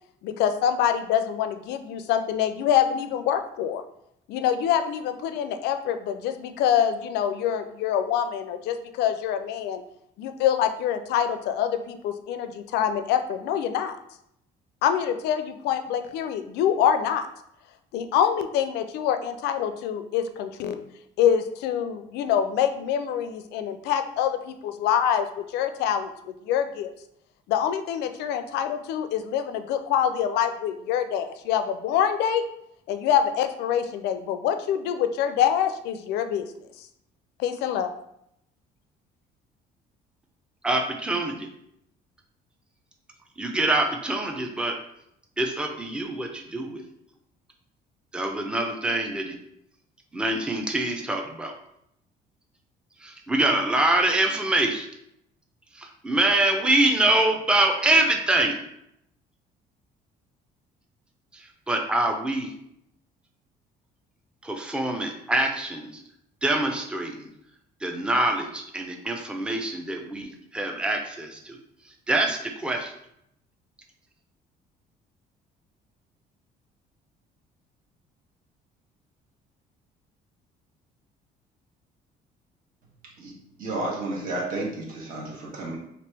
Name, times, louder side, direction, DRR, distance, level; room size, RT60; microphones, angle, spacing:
voice 1, 0.2-3.8 4.3-9.8 10.2-14.0 14.8-17.3 17.9-20.8 21.2-25.3 25.5-26.1 26.4-26.9 27.5-32.4 32.9-36.5 37.4-37.9, left 9 dB, 85° left, 9 dB, 0.4 m, -25 dB
voice 2, 40.6-41.5 43.4-44.7 45.4-46.8 48.1-49.3 50.1-51.5 53.0-54.9 55.7-58.6 61.3-62.5 64.4-65.9 66.4-67.3 67.8-71.6 72.1-72.9, right 2 dB, 5° right, 3 dB, 0.5 m, -25 dB
voice 3, 83.6-85.8, right 2 dB, 55° right, -3 dB, 1.3 m, -32 dB
3.0 x 2.9 x 3.3 m, 0.76 s
cardioid pair, 110°, 17 cm